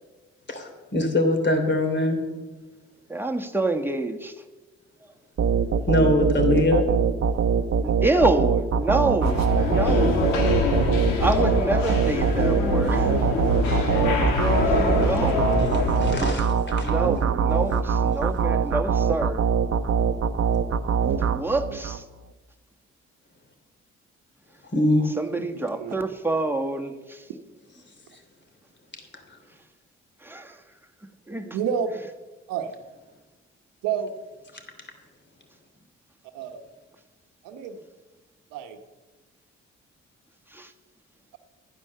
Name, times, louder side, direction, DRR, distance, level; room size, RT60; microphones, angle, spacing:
voice 1, 0.5-2.2 5.9-6.9 13.8-14.3 16.0-17.0 24.7-25.1, left 1 dB, 35° left, 4 dB, 3.2 m, -23 dB
voice 2, 3.1-4.3 7.8-10.3 11.2-13.6 14.1-14.2 14.6-15.4 16.2-19.5 21.2-22.0 25.1-27.3 30.2-30.6 31.3-31.6 40.5-40.7, right 2 dB, 5° right, 4 dB, 1.6 m, -27 dB
sound 1, 5.4-22.0, right 6 dB, 50° right, 1.0 m, -23 dB
sound 2, 9.2-16.3, left 4 dB, 85° left, 1.9 m, -25 dB
voice 3, 25.3-25.9 31.5-31.9 32.5-32.7 33.8-34.1 36.3-36.6 37.4-37.8 38.5-38.8, right 8 dB, 85° right, 7 dB, 1.2 m, -29 dB
12.5 x 9.5 x 6.8 m, 1.2 s
hypercardioid pair, 45°, 33 cm